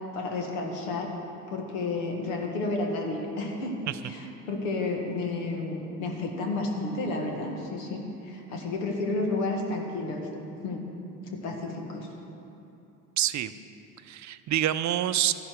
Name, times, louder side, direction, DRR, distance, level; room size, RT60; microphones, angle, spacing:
voice 1, 0.1-1.1 1.5-10.3 10.6-10.9 11.3-12.1, left 2 dB, 85° left, 2 dB, 1.7 m, -31 dB
voice 2, 13.2-13.5 14.0-15.3, right 12 dB, 45° right, 12 dB, 0.6 m, -27 dB
13.0 x 11.0 x 4.6 m, 2.9 s
hypercardioid pair, 65°, 40 cm